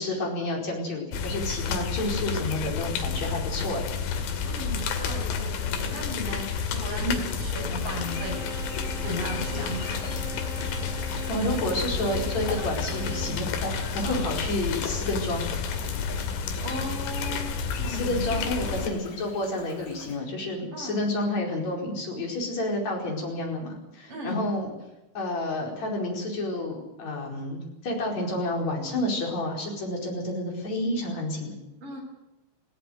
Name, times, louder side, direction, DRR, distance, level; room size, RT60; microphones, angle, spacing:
voice 1, 0.0-3.9 7.0-7.1 11.3-15.5 17.9-24.7 25.1-31.6, left 1 dB, 35° left, 0 dB, 5.7 m, -30 dB
sound 1, 1.1-18.9, left 5 dB, 85° left, 4.8 m, -30 dB
voice 2, 4.4-8.4 9.0-10.1 14.0-14.3 16.6-19.1 20.7-21.0 24.1-24.5 31.8-32.0, left 1 dB, 30° right, 1 dB, 6.9 m, -36 dB
sound 2, 7.7-20.2, left 4 dB, 65° left, 5.0 m, -45 dB
Bowed string instrument, 7.8-13.5, right 2 dB, 60° right, 3.0 m, -41 dB
19.0 x 17.0 x 9.6 m, 0.96 s
omnidirectional pair, 5.7 m